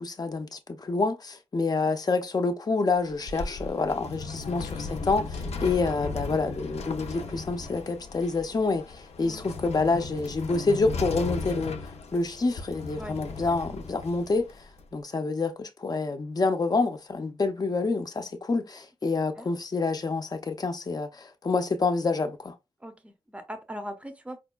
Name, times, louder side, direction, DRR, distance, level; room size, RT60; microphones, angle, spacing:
voice 1, 0.0-14.5 14.9-22.5, left 3 dB, 35° left, 0.6 m, -28 dB
sound 1, 2.9-14.8, left 4 dB, 85° left, 0.5 m, -36 dB
voice 2, 22.8-24.4, equal, 10° right, 0.7 m, -40 dB
5.1 x 2.2 x 2.3 m
wide cardioid pair, 125°, 11 cm